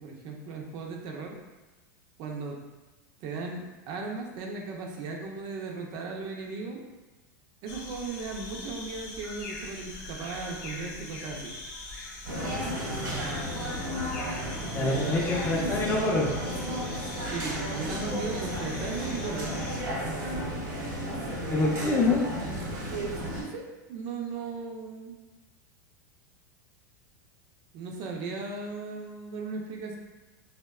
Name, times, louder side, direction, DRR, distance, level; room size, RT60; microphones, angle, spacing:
voice 1, 0.0-1.4 2.2-2.6 3.2-6.8 7.6-11.5 14.8-15.2 15.5-15.8 17.3-19.5 23.3-25.2 27.7-30.0, right 4 dB, 50° right, 1 dB, 0.4 m, -37 dB
sound 1, 7.7-19.8, left 2 dB, 70° left, 0.5 m, -42 dB
sound 2, 12.3-23.4, equal, 80° right, 0.8 m, -33 dB
voice 2, 14.7-16.3 21.5-22.2, left 2 dB, 20° left, -2 dB, 0.5 m, -25 dB
2.6 x 2.1 x 2.3 m, 1.1 s
hypercardioid pair, 115°, 10 cm